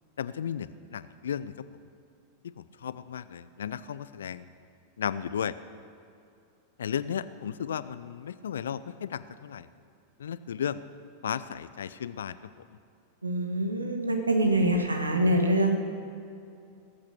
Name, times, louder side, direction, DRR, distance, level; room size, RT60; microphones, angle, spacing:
voice 1, 0.2-1.5 2.4-4.4 5.0-5.6 6.8-9.7 10.2-10.8 11.2-12.4, left 8 dB, 65° left, 15 dB, 0.5 m, -34 dB
voice 2, 13.2-15.8, right 1 dB, 80° right, 5 dB, 1.6 m, -25 dB
19.5 x 8.7 x 6.5 m, 2.5 s
figure-of-eight pair, 90°, 0 cm